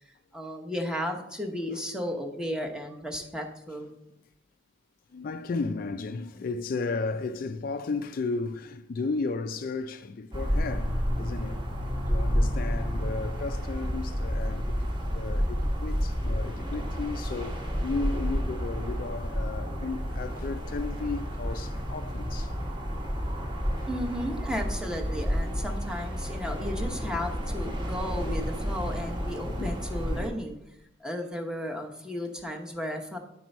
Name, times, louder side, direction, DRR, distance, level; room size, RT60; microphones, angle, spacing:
voice 1, 0.3-3.9 23.9-30.6 31.0-33.2, equal, 5° right, 0.8 m, -34 dB
voice 2, 5.1-11.6 12.1-22.6 22.9-23.0 23.8-23.9 29.6-29.9, left 3 dB, 50° left, 0.3 m, -34 dB
sound 1, 10.3-30.3, equal, 25° right, 1.1 m, -30 dB
8.9 x 4.5 x 5.3 m
head